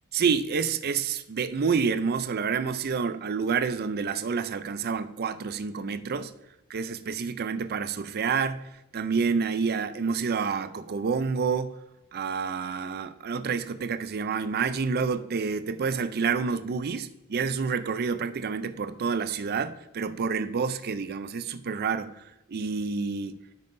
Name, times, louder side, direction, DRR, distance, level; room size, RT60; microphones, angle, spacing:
voice 1, 0.1-6.3 6.7-11.8 12.1-23.4, right 5 dB, 45° right, 0.4 m, -28 dB
13.0 x 5.6 x 2.6 m
head